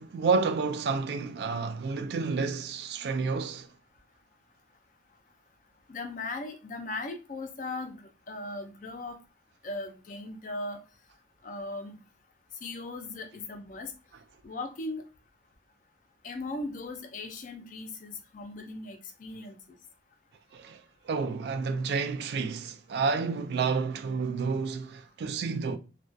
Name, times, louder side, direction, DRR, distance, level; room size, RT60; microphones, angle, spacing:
voice 1, 0.0-3.7 20.5-20.8 21.1-25.8, right 4 dB, 65° right, 0.3 m, -30 dB
voice 2, 5.9-9.2 9.6-10.8 11.4-12.0 12.6-13.9 14.4-15.0 16.2-19.6, left 2 dB, 45° left, 0.4 m, -38 dB
2.3 x 2.2 x 2.5 m
head